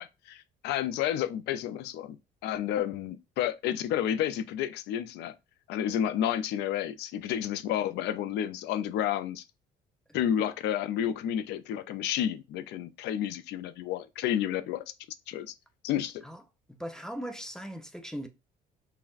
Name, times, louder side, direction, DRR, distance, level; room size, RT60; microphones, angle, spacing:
voice 1, 0.0-2.2 2.4-5.3 5.7-9.4 10.1-14.8 15.3-15.5 15.8-16.2, left 10 dB, 80° left, 0.4 m, -31 dB
voice 2, 16.7-18.3, equal, 5° left, 0.5 m, -39 dB
5.7 x 2.1 x 2.4 m
cardioid pair, 110°, 17 cm